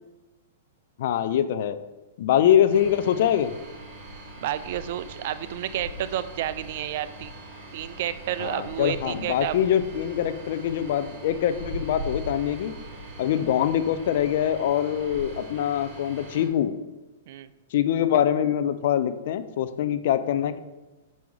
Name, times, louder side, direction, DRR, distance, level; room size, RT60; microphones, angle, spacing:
voice 1, 1.0-1.8 2.2-3.5 8.4-12.7 13.2-16.7 17.7-20.6, left 10 dB, 60° left, 12 dB, 0.5 m, -24 dB
sound 1, 2.7-16.5, right 1 dB, 30° right, 2.6 m, -41 dB
voice 2, 4.4-7.3 7.7-9.6 13.4-13.5 17.3-17.5, right 12 dB, 55° right, 13 dB, 0.4 m, -31 dB
6.1 x 5.4 x 4.7 m, 1.1 s
hypercardioid pair, 135°, 0 cm